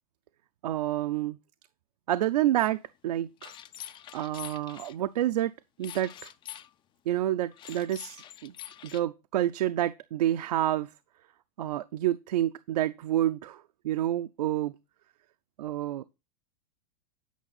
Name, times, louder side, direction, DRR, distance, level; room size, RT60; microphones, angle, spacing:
voice 1, 0.6-1.4 2.1-3.5 4.1-5.5 5.8-6.3 7.1-8.5 8.8-10.9 11.6-14.8 15.6-16.0, right 13 dB, 85° right, 0.5 m, -29 dB
sound 1, 2.6-2.7 3.4-4.9 5.8-6.7 7.5-9.0, left 12 dB, 25° left, 0.4 m, -45 dB
9.2 x 5.2 x 4.0 m
hypercardioid pair, 125°, 20 cm